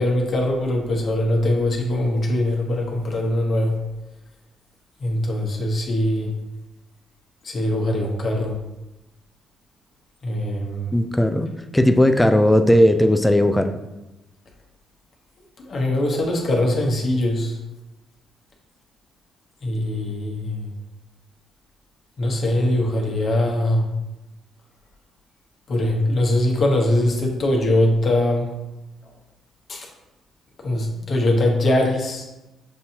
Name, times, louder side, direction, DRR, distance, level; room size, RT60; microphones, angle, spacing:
voice 1, 0.0-3.8 5.0-6.3 7.4-8.6 10.2-10.9 15.6-17.6 19.6-20.7 22.2-23.9 25.7-28.6 29.7-29.9 30.6-32.2, left 1 dB, 50° left, 0 dB, 1.0 m, -22 dB
voice 2, 10.9-13.7, left 1 dB, 5° left, 8 dB, 0.4 m, -17 dB
6.2 x 2.7 x 2.8 m, 0.98 s
cardioid pair, 90°, 0 cm